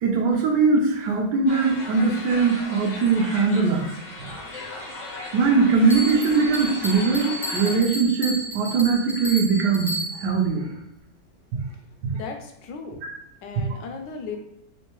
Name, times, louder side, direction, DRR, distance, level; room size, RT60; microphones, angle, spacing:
voice 1, 0.0-3.9 4.2-4.3 5.3-9.9 10.2-10.7, right 4 dB, 75° right, 1 dB, 1.3 m, -21 dB
sound 1, 1.5-7.8, left 2 dB, 50° left, 0.5 m, -37 dB
Bell, 5.9-10.4, equal, ahead, 0.5 m, -32 dB
voice 2, 12.1-13.1 13.4-14.4, left 5 dB, 80° left, 4 dB, 1.3 m, -36 dB
3.7 x 3.2 x 3.0 m, 0.81 s
omnidirectional pair, 1.9 m